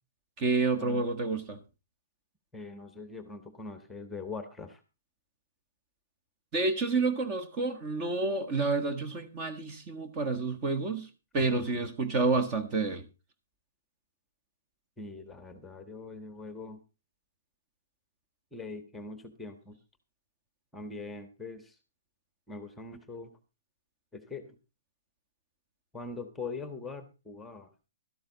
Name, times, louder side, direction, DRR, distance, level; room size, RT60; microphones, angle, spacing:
voice 1, 0.4-1.6 6.5-11.1 11.3-13.0, right 3 dB, 30° right, 1.5 m, -29 dB
voice 2, 2.5-4.8 11.4-11.9 15.0-16.8 18.5-19.8 20.7-21.8 22.5-23.3 24.1-24.6 25.9-27.7, left 3 dB, 5° left, 1.3 m, -42 dB
12.5 x 12.0 x 4.0 m
hypercardioid pair, 145°, 0 cm